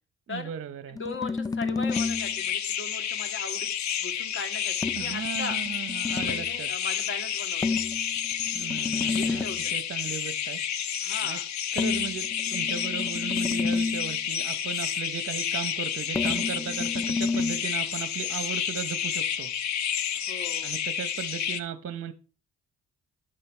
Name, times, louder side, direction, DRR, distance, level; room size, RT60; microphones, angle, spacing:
voice 1, 0.3-1.0 4.9-6.7 8.5-9.4 9.7-10.6 11.2-11.4 11.7-19.5 20.6-22.1, right 8 dB, 45° right, 0.8 m, -36 dB
voice 2, 0.9-3.7 4.0-5.6 6.1-7.8 9.1-9.8 11.0-11.5 20.1-20.7, left 4 dB, 40° left, 2.2 m, -38 dB
sound 1, 0.9-2.4 4.8-6.5 7.6-9.7 11.8-14.2 16.1-17.6, left 4 dB, 10° left, 0.4 m, -30 dB
sound 2, 1.9-21.6, left 9 dB, 65° left, 1.0 m, -30 dB
10.0 x 7.7 x 4.4 m
cardioid pair, 90°, 30 cm